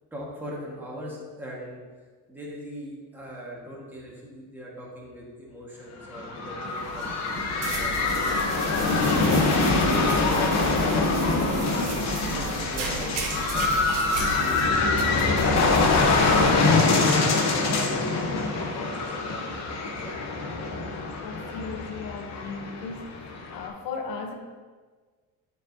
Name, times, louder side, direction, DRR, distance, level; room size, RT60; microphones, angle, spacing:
voice 1, 0.1-1.8 2.3-8.5 9.1-9.7 10.1-12.0 12.3-13.1 13.4-13.7 14.4-14.7 15.2-16.4 17.2-19.6 19.9-20.2, equal, 5° right, -5 dB, 1.6 m, -39 dB
sound 1, 6.0-23.7, left 3 dB, 50° left, 1.0 m, -24 dB
sound 2, 6.7-16.7, right 3 dB, 65° right, 1.2 m, -35 dB
voice 2, 21.2-23.1 23.5-24.3, left 4 dB, 75° left, 4 dB, 1.0 m, -36 dB
9.9 x 4.9 x 2.8 m, 1.5 s
cardioid pair, 135°, 34 cm